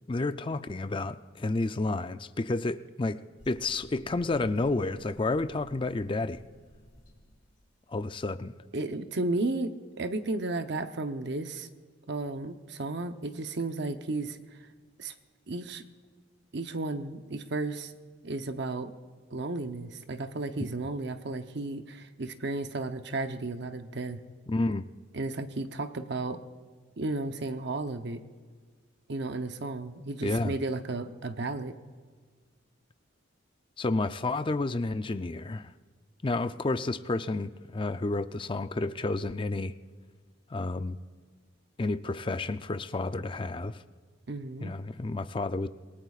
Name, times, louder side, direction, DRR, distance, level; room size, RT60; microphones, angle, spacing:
voice 1, 0.1-3.2 3.5-6.4 7.9-8.5 24.5-24.9 30.2-30.5 33.8-35.7 36.2-39.7 40.5-41.0 41.8-43.8 44.6-45.7, left 2 dB, 25° left, 0.4 m, -30 dB
sound 1, 3.4-7.7, equal, 60° left, 2.1 m, -55 dB
voice 2, 8.7-11.7 12.1-14.4 15.0-15.1 15.5-15.8 16.5-17.9 18.2-18.9 19.3-24.2 25.1-26.4 27.0-28.2 29.1-31.7 44.3-44.7, right 2 dB, 60° right, 0.8 m, -33 dB
27.5 x 18.5 x 2.4 m
head